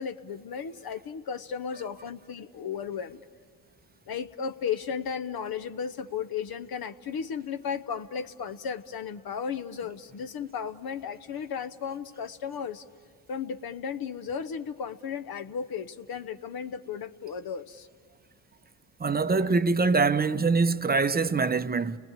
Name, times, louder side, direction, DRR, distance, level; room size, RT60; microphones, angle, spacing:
voice 1, 0.0-3.2 4.1-12.8 13.3-17.9 19.4-19.5, left 7 dB, 50° left, 0.9 m, -35 dB
voice 2, 19.0-22.0, right 4 dB, 20° right, 0.7 m, -24 dB
29.5 x 20.0 x 8.9 m
supercardioid pair, 65°, 47 cm